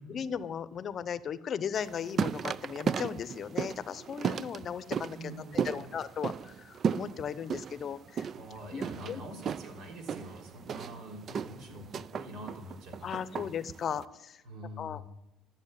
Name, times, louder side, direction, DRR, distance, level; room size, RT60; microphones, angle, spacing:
voice 1, 0.1-5.3 5.6-8.3 8.7-9.2 13.0-14.4 14.8-15.0, left 8 dB, 45° left, 15 dB, 0.7 m, -37 dB
sound 1, 1.7-14.0, right 7 dB, 45° right, 0.4 m, -36 dB
voice 2, 5.1-5.9 8.3-13.5 14.4-15.0, equal, 75° right, 2 dB, 3.7 m, -45 dB
13.0 x 7.0 x 9.1 m, 0.89 s
cardioid pair, 110°, 0 cm